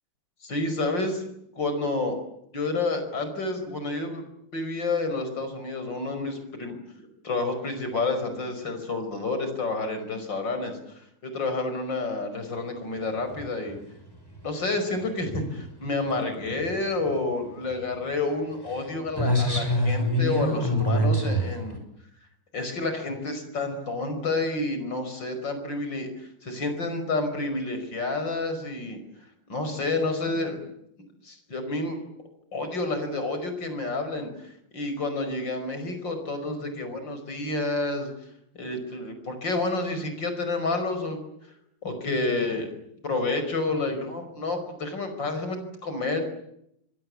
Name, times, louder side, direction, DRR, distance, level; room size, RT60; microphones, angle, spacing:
voice 1, 0.4-1.3 1.6-2.2 2.5-4.2 4.5-6.8 7.2-13.8 14.4-21.8 22.5-29.0 29.5-30.6 31.2-32.0 32.5-38.1 38.5-41.2 41.8-42.7 43.0-46.2, left 2 dB, 60° left, 8 dB, 6.1 m, -29 dB
sound 1, 13.2-13.7 14.1-14.4 15.0-15.6 16.5-16.8 17.0-17.1 17.4-17.5 17.7-18.0 18.6-18.8 19.1-21.8, equal, 10° left, 6.2 m, -25 dB
26.5 x 23.0 x 8.6 m, 0.77 s
omnidirectional pair, 2.2 m